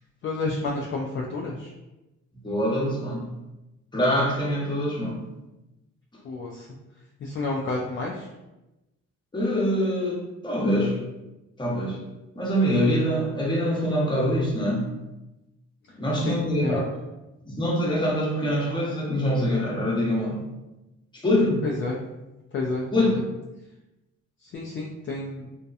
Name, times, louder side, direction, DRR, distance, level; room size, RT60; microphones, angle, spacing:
voice 1, 0.2-1.7 6.2-6.7 7.2-8.3 16.3-16.8 21.6-22.0 22.5-23.2 24.4-25.5, left 3 dB, 40° left, -2 dB, 0.4 m, -30 dB
voice 2, 2.4-3.3 3.9-5.3 9.3-11.0 11.6-12.0 12.4-14.9 16.0-16.8 17.4-20.4 21.1-21.6 22.9-23.2, equal, 15° left, -4 dB, 0.8 m, -24 dB
2.7 x 2.2 x 2.4 m, 1.0 s
cardioid pair, 90°, 30 cm